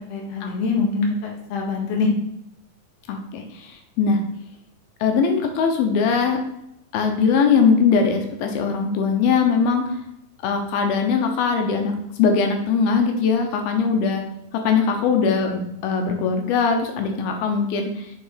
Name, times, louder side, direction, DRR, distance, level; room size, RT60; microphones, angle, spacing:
voice 1, 0.1-2.1, left 4 dB, 55° left, -1 dB, 2.1 m, -24 dB
voice 2, 3.1-4.2 5.0-6.4 6.9-9.8 10.4-14.2 14.5-18.1, left 5 dB, 80° left, 4 dB, 2.6 m, -21 dB
6.7 x 4.0 x 4.9 m, 0.82 s
omnidirectional pair, 4.3 m